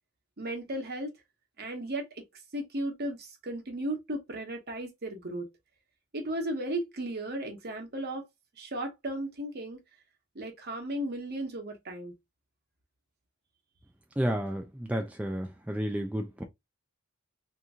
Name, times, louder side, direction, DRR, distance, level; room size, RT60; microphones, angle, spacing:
voice 1, 0.4-1.1 1.6-2.2 2.5-5.4 6.1-8.2 8.6-9.8 10.3-12.1, right 1 dB, 50° right, 1.1 m, -35 dB
voice 2, 14.2-16.4, equal, 5° right, 0.4 m, -31 dB
2.9 x 2.6 x 3.6 m
head